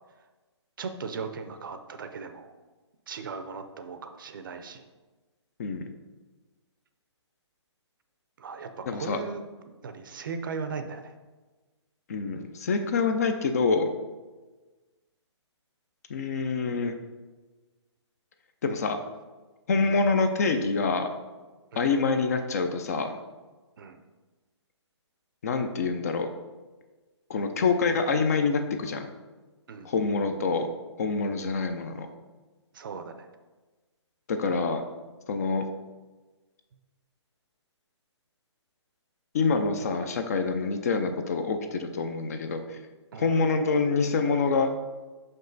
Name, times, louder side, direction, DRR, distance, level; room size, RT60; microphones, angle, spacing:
voice 1, 0.8-2.5 3.1-4.8 8.4-9.4 9.8-11.1 19.8-19.9 21.7-21.9 23.8-24.0 29.7-29.9 32.7-33.3 43.1-43.3, right 5 dB, 45° right, 8 dB, 0.5 m, -37 dB
voice 2, 8.9-9.2 12.1-13.9 16.1-17.0 18.6-19.0 19.7-21.1 21.8-23.2 25.4-26.3 27.3-29.1 29.8-30.7 31.0-32.1 34.3-34.8 35.3-35.6 39.3-42.8 43.1-44.7, left 4 dB, 35° left, 7 dB, 0.4 m, -26 dB
5.7 x 5.4 x 3.9 m, 1.3 s
hypercardioid pair, 165°, 15 cm